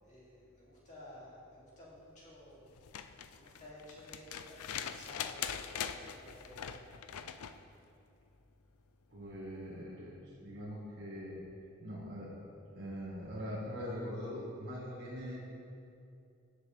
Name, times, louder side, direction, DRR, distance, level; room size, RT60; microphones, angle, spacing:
voice 1, 0.0-2.8 3.3-6.7, left 1 dB, 30° left, -7 dB, 2.6 m, -54 dB
sound 1, 2.7-7.6 9.2-9.3, left 8 dB, 85° left, 0.5 m, -42 dB
voice 2, 9.1-11.4 11.8-12.3 12.7-15.4, equal, 45° right, -7 dB, 1.7 m, -42 dB
17.0 x 6.7 x 3.4 m, 2.6 s
head